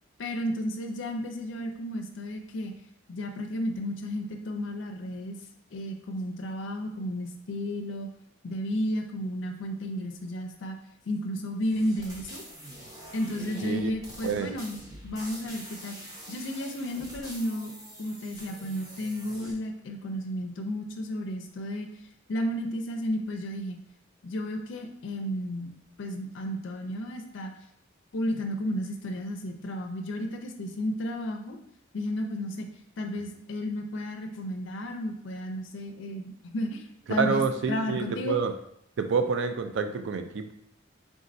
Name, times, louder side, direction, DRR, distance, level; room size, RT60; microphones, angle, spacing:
voice 1, 0.2-2.7 3.1-5.4 5.7-8.1 8.4-10.8 11.1-12.4 13.1-16.0 16.3-17.7 18.0-21.9 22.3-23.8 24.2-27.5 28.1-31.6 31.9-32.7 33.0-37.4 37.7-38.4, equal, 65° left, 4 dB, 0.4 m, -33 dB
sound 1, 11.6-19.5, right 1 dB, 20° right, 0.7 m, -45 dB
voice 2, 13.6-13.9 14.2-14.5 37.2-38.5 39.0-40.5, right 5 dB, 60° right, 8 dB, 0.3 m, -28 dB
4.0 x 3.6 x 2.6 m, 0.72 s
head